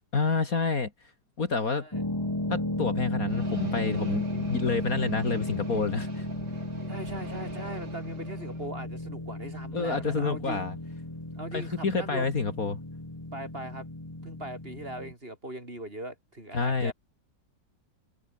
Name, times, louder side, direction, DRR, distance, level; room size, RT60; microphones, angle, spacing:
voice 1, 0.1-0.9 1.4-1.9 2.5-6.3 9.7-10.8 11.5-12.8 16.5-16.9, left 4 dB, 50° left, 2.6 m, -28 dB
sound 1, 1.9-15.1, left 1 dB, 15° left, 2.5 m, -34 dB
sound 2, 3.3-8.7, right 3 dB, 65° right, 5.1 m, -44 dB
voice 2, 6.9-10.7 11.3-12.3 13.3-13.9 14.2-16.9, right 1 dB, 30° right, 6.4 m, -40 dB
omnidirectional pair, 2.0 m